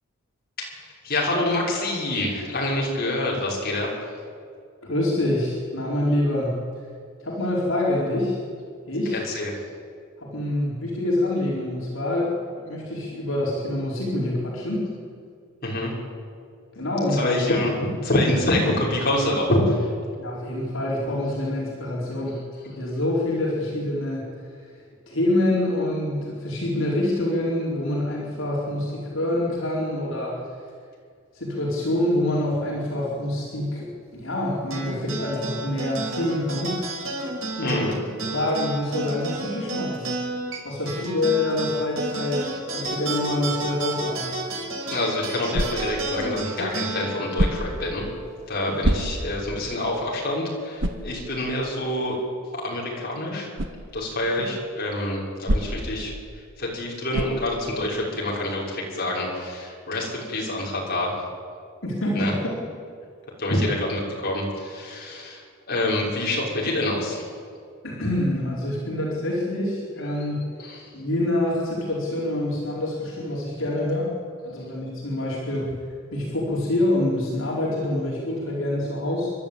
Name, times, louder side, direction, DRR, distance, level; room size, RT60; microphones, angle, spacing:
voice 1, 0.6-4.1 9.1-9.6 15.6-15.9 17.1-17.7 18.0-19.9 37.6-38.0 44.9-48.1 48.5-52.2 52.5-53.5 53.9-56.1 56.6-61.1 62.1-62.3 63.4-67.3 70.1-70.3 70.6-70.9, left 1 dB, 45° left, -4 dB, 6.1 m, -26 dB
voice 2, 4.8-6.6 7.2-8.4 8.8-9.2 10.2-14.9 16.7-17.7 20.2-24.7 25.1-30.4 31.3-36.8 37.6-37.9 38.3-40.1 40.6-44.3 61.8-62.5 67.8-70.4 70.9-74.1 74.4-75.8 76.1-79.3, left 1 dB, 70° left, -5 dB, 4.7 m, -26 dB
sound 1, 34.7-49.4, right 2 dB, 80° right, 5.3 m, -32 dB
sound 2, 45.5-46.1 47.3-47.8 48.8-49.4 49.9-50.0 50.8-51.1 53.5-53.8 55.4-56.0 57.1-57.5, right 1 dB, 65° right, 1.6 m, -25 dB
29.5 x 12.0 x 9.0 m, 2.2 s
head